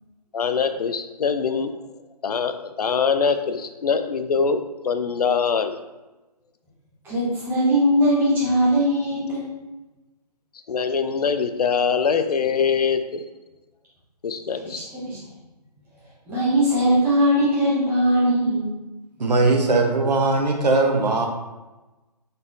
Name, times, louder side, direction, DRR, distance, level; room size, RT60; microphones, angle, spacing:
voice 1, 0.3-1.7 2.2-5.8 10.7-13.2 14.2-14.8, left 6 dB, 65° left, 9 dB, 0.4 m, -23 dB
voice 2, 7.0-9.4 14.6-15.2 16.3-18.7, equal, 10° right, -9 dB, 1.2 m, -20 dB
voice 3, 19.2-21.3, right 3 dB, 75° right, 3 dB, 0.8 m, -19 dB
4.0 x 3.7 x 2.5 m, 1.1 s
figure-of-eight pair, 145°, 21 cm